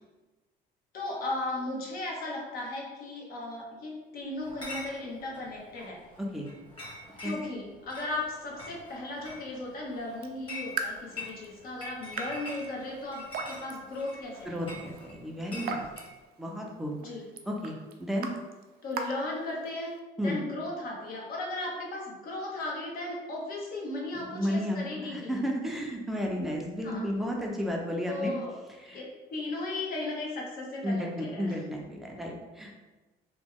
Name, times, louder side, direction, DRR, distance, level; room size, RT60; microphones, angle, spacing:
voice 1, 0.9-6.0 7.2-14.8 17.0-17.2 18.8-25.4 26.8-27.1 28.1-28.5 28.9-31.6, left 2 dB, 60° left, -2 dB, 0.9 m, -36 dB
Chatter / Chink clink, 4.4-16.1, left 2 dB, 30° left, 1.2 m, -45 dB
Raindrop / Drip, 10.1-20.0, right 4 dB, 65° right, 0.4 m, -42 dB
voice 2, 14.5-15.8 16.4-16.9 17.5-17.7 18.0-18.3 20.2-20.4 24.3-24.8 25.0-28.3 28.8-29.0 30.8-32.8, equal, ahead, -1 dB, 0.5 m, -32 dB
3.0 x 2.2 x 3.5 m, 1.2 s
cardioid pair, 110°, 17 cm